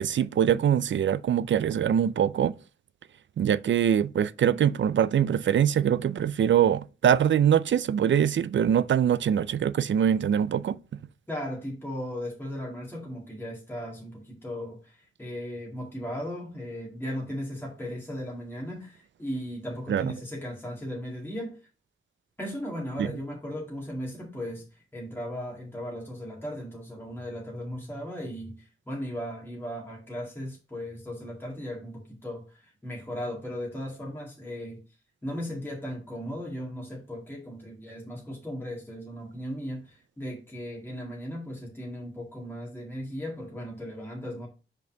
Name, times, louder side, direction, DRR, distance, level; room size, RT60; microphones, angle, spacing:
voice 1, 0.0-2.5 3.4-10.8 19.9-20.1 23.0-23.1, right 9 dB, 60° right, 0.4 m, -23 dB
voice 2, 11.3-21.6 22.4-34.8 35.2-44.5, equal, 10° left, 1.9 m, -37 dB
5.2 x 3.9 x 5.8 m
wide cardioid pair, 145°, 21 cm